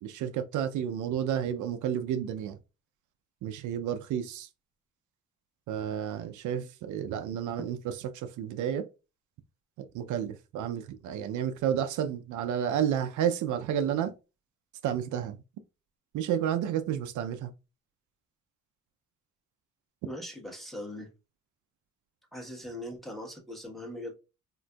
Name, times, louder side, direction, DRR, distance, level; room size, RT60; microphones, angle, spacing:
voice 1, 0.0-2.6 3.4-4.5 5.7-7.8 8.1-8.9 9.9-14.1 14.8-15.4 16.1-17.5, right 9 dB, 75° right, 0.5 m, -31 dB
voice 2, 20.0-21.1 22.3-24.2, left 1 dB, ahead, 1.0 m, -40 dB
3.7 x 2.5 x 2.2 m
cardioid pair, 90°, 30 cm